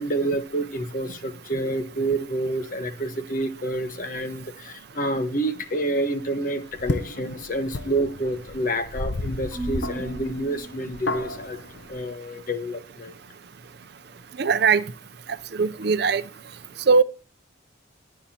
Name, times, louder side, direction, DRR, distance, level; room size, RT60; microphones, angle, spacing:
voice 1, 0.0-11.6 11.9-13.1, right 1 dB, 45° left, 1.3 m, -28 dB
sound 1, 6.7-12.0, left 2 dB, 60° left, 0.8 m, -32 dB
Marimba xylophone / Wood, 9.5-11.7, right 2 dB, 10° right, 5.1 m, -37 dB
voice 2, 14.4-14.8 15.5-16.2 16.9-17.0, right 5 dB, 55° right, 0.6 m, -19 dB
22.5 x 8.3 x 2.9 m
head